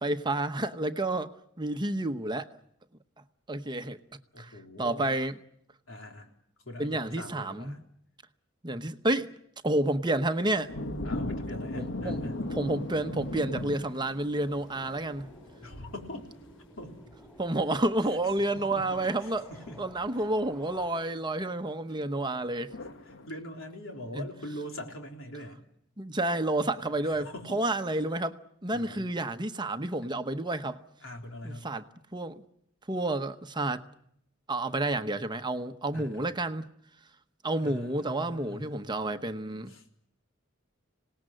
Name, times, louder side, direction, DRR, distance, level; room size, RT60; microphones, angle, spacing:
voice 1, 0.0-1.3 1.6-2.5 3.5-4.0 4.4-4.5 4.8-5.3 6.8-7.8 8.6-9.3 9.6-10.7 11.8-15.3 17.4-19.4 19.8-22.7 24.1-24.2 26.0-28.4 28.6-30.8 31.4-31.8 32.1-32.4 32.9-33.8 34.5-36.7 37.4-39.7, right 2 dB, 20° right, 0.9 m, -30 dB
voice 2, 4.3-5.1 5.9-6.3 6.6-7.8 11.0-12.4 15.6-16.3 16.8-17.2 18.1-18.2 18.5-19.8 20.2-20.3 22.8-25.6 27.0-27.6 28.7-29.1 31.0-31.7 35.9-36.3 37.6-38.8 39.7-39.9, left 1 dB, 85° left, 3.8 m, -43 dB
sound 1, 10.4-16.1 22.7-23.3, left 1 dB, 65° left, 1.3 m, -37 dB
sound 2, 14.3-20.9, equal, 5° left, 3.7 m, -52 dB
26.5 x 18.5 x 7.7 m
head